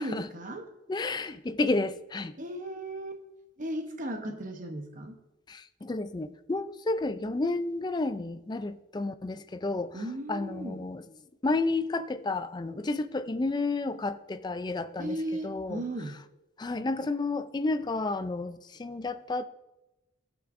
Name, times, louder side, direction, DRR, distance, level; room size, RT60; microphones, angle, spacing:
voice 1, 0.0-0.7 2.4-3.2 3.6-5.2 9.9-10.8 15.0-16.2, right 1 dB, 40° right, 0.9 m, -36 dB
voice 2, 0.9-2.3 5.5-10.0 10.3-11.0 11.4-15.2 15.4-15.8 16.6-19.4, left 3 dB, 20° left, 0.4 m, -31 dB
15.5 x 6.0 x 2.5 m
head